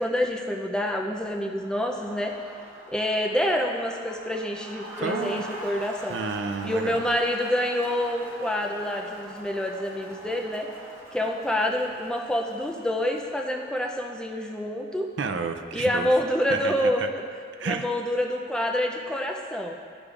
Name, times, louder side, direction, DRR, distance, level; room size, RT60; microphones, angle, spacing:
voice 1, 0.0-2.4 2.9-6.2 6.6-10.7 11.1-15.1 15.7-17.0 17.6-19.7, left 1 dB, 5° left, 1 dB, 0.4 m, -27 dB
Crowd, 1.5-14.0, right 1 dB, 15° right, 1.1 m, -43 dB
voice 2, 5.0-5.4 6.1-7.1 15.2-16.1 16.5-17.1 17.6-17.8, right 4 dB, 80° right, 7 dB, 0.5 m, -31 dB
13.0 x 5.0 x 2.4 m, 2.2 s
head